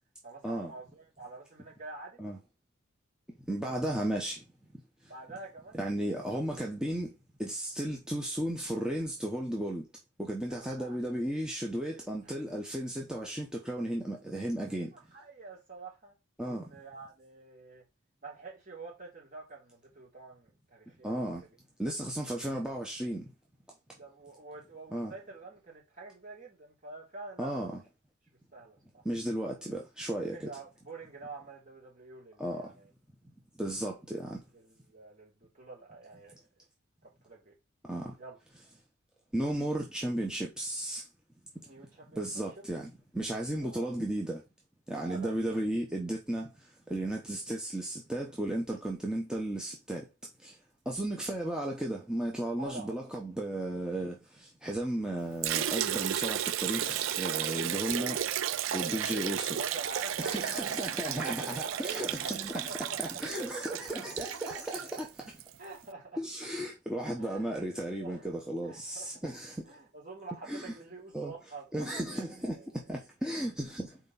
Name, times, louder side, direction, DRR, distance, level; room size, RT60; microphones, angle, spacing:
voice 1, 0.2-2.2 5.0-5.8 10.5-11.0 12.2-12.4 14.7-16.2 16.4-17.8 18.2-21.6 23.9-27.8 28.5-29.0 30.3-32.9 34.2-36.4 37.0-37.5 38.2-38.4 41.6-42.5 43.6-43.9 45.0-45.4 52.6-53.0 58.7-61.1 61.4-62.3 62.6-64.1 64.4-64.6 64.9-65.0 65.6-66.2 67.2-67.5 68.0-69.4 69.6-72.3 72.5-72.8, right 3 dB, 40° right, 3.0 m, -47 dB
voice 2, 3.5-4.4 5.7-7.1 7.4-9.8 10.2-14.9 16.4-16.7 21.0-21.4 21.8-23.3 24.9-25.1 27.4-27.7 29.0-30.5 32.4-32.7 33.6-34.4 37.8-38.2 39.3-41.1 42.1-44.4 44.9-50.1 50.4-50.6 50.8-58.2 58.7-59.6 60.2-62.7 63.0-65.1 66.2-69.6 70.5-70.7 71.1-71.3 71.7-74.0, right 1 dB, 5° right, 0.8 m, -34 dB
Liquid, 55.4-65.5, right 10 dB, 65° right, 0.4 m, -33 dB
4.4 x 4.4 x 5.4 m
head